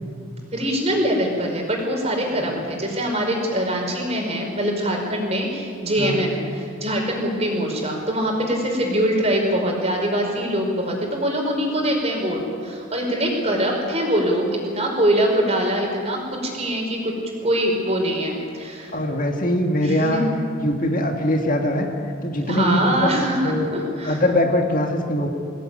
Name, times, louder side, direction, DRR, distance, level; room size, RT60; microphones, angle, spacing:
voice 1, 0.5-17.1 17.4-18.9 19.8-20.2 22.5-24.2, equal, 30° right, 1 dB, 4.8 m, -23 dB
voice 2, 18.9-20.2 20.6-21.9 22.2-23.1 23.4-23.7 24.0-25.3, left 1 dB, 40° left, 2 dB, 1.9 m, -22 dB
23.5 x 16.5 x 9.3 m, 2.6 s
head